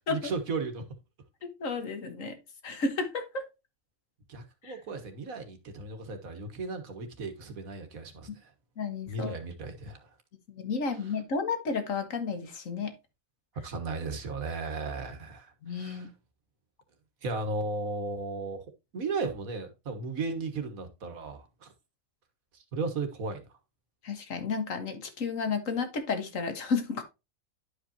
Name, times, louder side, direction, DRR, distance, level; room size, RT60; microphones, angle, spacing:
voice 1, 0.1-0.9 4.3-8.5 9.1-10.0 13.6-16.1 17.2-18.6 18.9-21.7 22.7-23.4, right 3 dB, 85° right, 1.8 m, -35 dB
voice 2, 1.4-2.3 2.6-3.4 4.6-4.7 8.8-9.4 10.6-12.9 15.6-16.1 24.0-27.0, left 4 dB, 70° left, 1.7 m, -32 dB
11.0 x 5.0 x 2.8 m
omnidirectional pair, 1.4 m